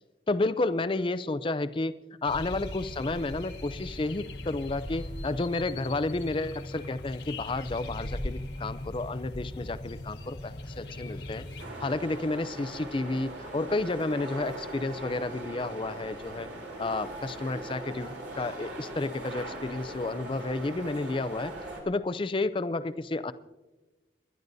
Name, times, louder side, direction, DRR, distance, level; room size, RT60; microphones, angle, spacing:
voice 1, 0.3-1.9 2.2-11.4 11.8-16.5 16.8-21.5 21.9-23.3, left 2 dB, 30° left, 13 dB, 0.4 m, -31 dB
sound 1, 2.3-11.7, left 1 dB, 65° left, 1.2 m, -39 dB
sound 2, 11.6-21.8, right 1 dB, 75° right, 3.4 m, -40 dB
28.5 x 12.0 x 2.7 m, 1.2 s
head